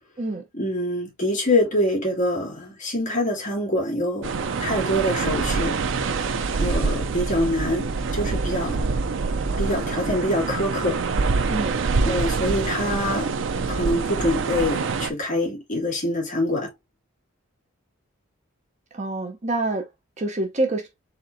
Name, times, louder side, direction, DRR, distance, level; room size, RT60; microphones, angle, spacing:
voice 1, 0.5-5.7 6.6-8.9 9.6-11.0 12.0-13.3 13.7-16.7, left 1 dB, 35° left, 2.4 m, -25 dB
sound 1, 4.2-15.1, right 4 dB, 60° right, 0.5 m, -25 dB
voice 2, 11.5-11.8 18.9-19.9 20.2-20.9, right 2 dB, 35° right, 0.8 m, -26 dB
4.3 x 3.8 x 2.6 m
head